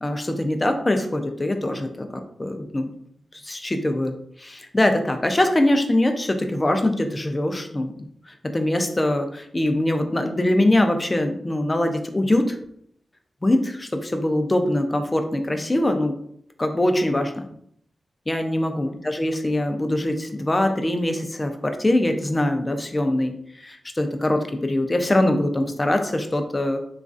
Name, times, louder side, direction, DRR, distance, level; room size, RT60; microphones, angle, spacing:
voice 1, 0.0-2.9 3.4-7.9 8.3-12.6 13.4-16.2 16.6-17.5 18.3-26.8, left 1 dB, 25° left, 6 dB, 0.4 m, -23 dB
3.0 x 2.4 x 2.5 m, 0.68 s
cardioid pair, 60°, 0 cm